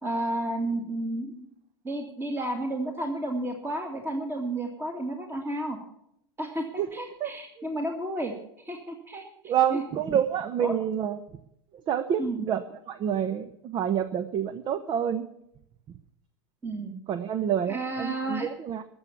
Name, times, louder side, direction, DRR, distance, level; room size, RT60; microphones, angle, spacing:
voice 1, 0.0-1.5 1.8-5.8 6.4-6.7 6.9-9.8 10.6-10.7 12.2-12.5 16.6-16.9 17.7-18.5, right 1 dB, 15° right, 3 dB, 2.2 m, -32 dB
voice 2, 7.2-7.7 9.4-11.2 11.9-15.3 17.1-18.8, right 9 dB, 35° right, 12 dB, 0.9 m, -28 dB
14.0 x 7.2 x 9.4 m, 0.75 s
hypercardioid pair, 85°, 13 cm